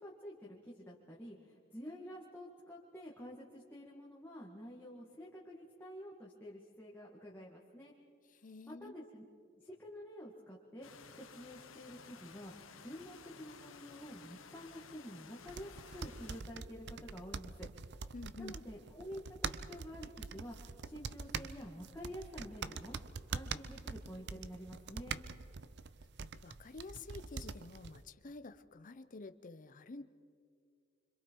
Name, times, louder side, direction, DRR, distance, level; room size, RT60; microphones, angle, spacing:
voice 1, 0.0-7.9 8.7-9.2 9.6-10.9 11.2-12.5 12.8-17.7 18.4-19.2 19.7-23.0 23.3-25.2, equal, 10° left, -5 dB, 1.8 m, -49 dB
voice 2, 8.4-8.9 18.1-18.6 26.4-30.0, left 3 dB, 40° left, 10 dB, 0.7 m, -49 dB
sound 1, 10.8-16.4, left 5 dB, 85° left, 1.3 m, -55 dB
sound 2, 15.5-28.0, right 5 dB, 60° right, 0.6 m, -44 dB
26.0 x 25.5 x 4.6 m, 2.3 s
head